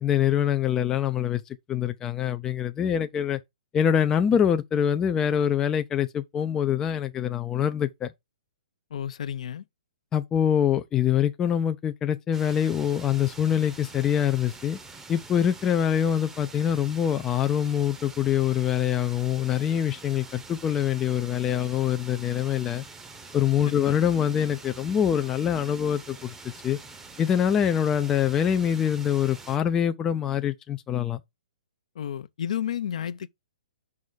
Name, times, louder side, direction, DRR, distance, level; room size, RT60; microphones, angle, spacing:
voice 1, 0.0-1.4 1.7-3.4 3.7-8.1 10.1-14.8 15.1-22.8 23.3-26.3 26.6-26.8 27.2-31.2, left 9 dB, 15° left, 0.4 m, -24 dB
voice 2, 8.9-9.6 23.7-24.0 32.0-33.3, left 9 dB, 60° left, 0.6 m, -32 dB
sound 1, 12.3-29.6, right 3 dB, 10° right, 0.7 m, -45 dB
5.4 x 4.8 x 3.9 m
hypercardioid pair, 155°, 4 cm